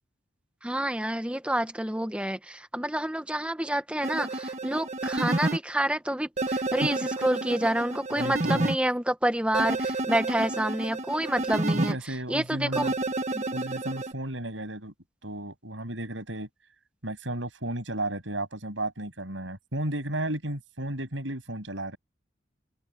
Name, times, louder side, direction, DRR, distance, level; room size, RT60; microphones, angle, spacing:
voice 1, 0.6-11.9 12.3-12.9 13.3-13.4, right 1 dB, 5° right, 1.3 m, -28 dB
sound 1, 4.0-5.6 6.4-8.8 9.5-11.9 12.7-14.1, right 2 dB, 35° right, 1.6 m, -30 dB
voice 2, 8.2-8.7 10.4-10.5 11.7-12.9 13.5-14.9 15.2-16.5 17.0-22.0, right 1 dB, 85° right, 7.9 m, -33 dB
head